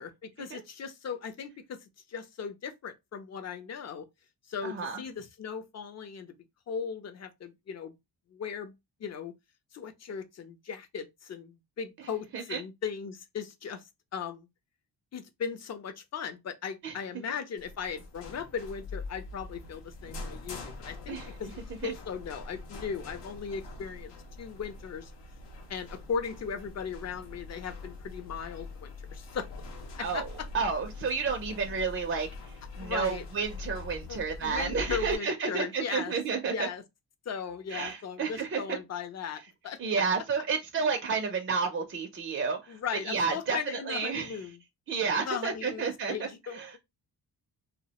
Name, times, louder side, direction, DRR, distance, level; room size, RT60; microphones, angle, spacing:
voice 1, 0.0-4.1 4.5-6.4 6.7-7.9 8.3-8.7 9.0-9.4 9.7-14.5 15.1-21.5 21.8-24.1 24.4-25.1 25.7-29.6 29.9-30.5 32.8-33.2 34.1-36.1 36.4-36.8 37.3-40.0 42.7-44.6 45.3-46.8, left 6 dB, 40° left, 0.4 m, -38 dB
voice 2, 4.6-5.0 12.3-12.6 16.8-16.9 21.1-21.3 21.8-21.9 30.0-30.2 30.5-32.3 32.8-36.7 37.7-38.8 39.8-42.7 43.1-43.6 43.9-44.3 44.9-46.1, right 5 dB, 35° right, 0.4 m, -31 dB
sound 1, 17.6-35.1, left 3 dB, 85° left, 0.7 m, -43 dB
2.3 x 2.1 x 2.8 m
wide cardioid pair, 120°, 41 cm